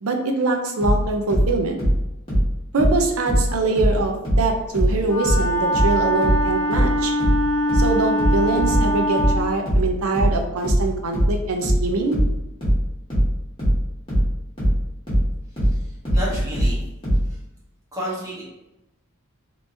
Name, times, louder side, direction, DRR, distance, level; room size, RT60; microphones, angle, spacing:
voice 1, 0.0-1.8 2.7-7.1 7.7-12.2, right 3 dB, 75° right, 3 dB, 0.6 m, -23 dB
sound 1, 0.8-4.0 4.2-17.3, equal, 25° left, 1.4 m, -20 dB
Wind instrument woodwind instrument, 5.0-9.5, equal, 90° left, 0.5 m, -23 dB
voice 2, 15.7-16.8 17.3-17.4 17.9-18.4, equal, 15° right, -6 dB, 1.1 m, -31 dB
3.3 x 3.0 x 2.7 m, 0.91 s
head